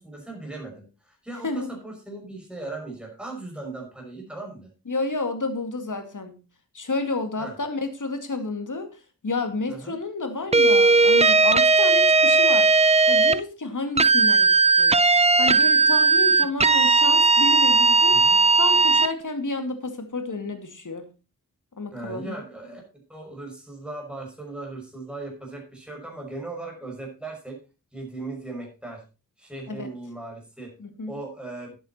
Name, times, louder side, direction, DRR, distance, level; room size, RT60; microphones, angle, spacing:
voice 1, 0.0-4.7 7.4-7.5 9.7-10.0 18.1-18.4 21.9-22.8 23.1-27.6 27.9-29.0 29.4-30.7 31.1-31.8, right 2 dB, 5° right, -1 dB, 5.8 m, -38 dB
voice 2, 4.9-6.4 6.7-12.7 13.1-18.2 18.5-21.0 21.8-22.4 29.7-29.9 30.8-31.2, left 3 dB, 60° left, 7 dB, 2.3 m, -31 dB
sound 1, 10.5-13.4 14.0-19.1, right 4 dB, 20° right, 0.5 m, -17 dB
11.5 x 8.6 x 4.2 m, 0.31 s
wide cardioid pair, 60°, 35 cm